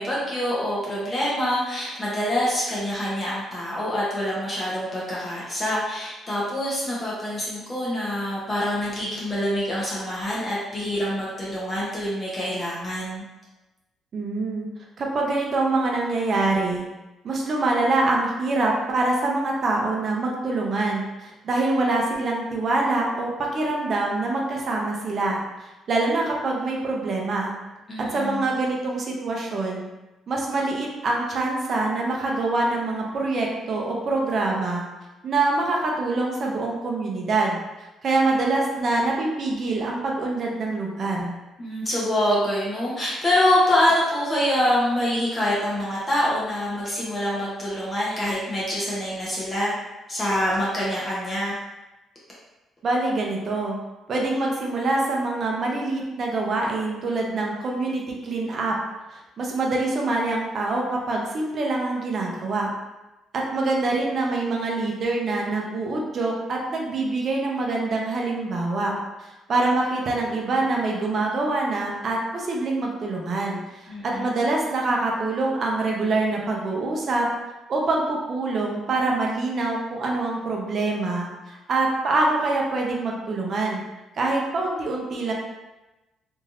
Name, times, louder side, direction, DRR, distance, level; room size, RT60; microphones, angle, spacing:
voice 1, 0.0-13.2 27.9-28.5 41.6-49.8 50.1-51.6 73.9-74.4, left 1 dB, 25° left, -7 dB, 0.7 m, -25 dB
voice 2, 14.1-14.7 15.0-16.8 17.2-27.5 28.0-29.9 30.3-34.8 35.2-37.6 38.0-41.3 52.8-53.8 54.1-58.8 59.1-62.7 63.3-68.9 69.2-77.3 77.7-83.8 84.2-85.3, right 2 dB, 45° right, -1 dB, 0.6 m, -25 dB
3.2 x 2.6 x 2.4 m, 1.0 s
cardioid pair, 145°, 0 cm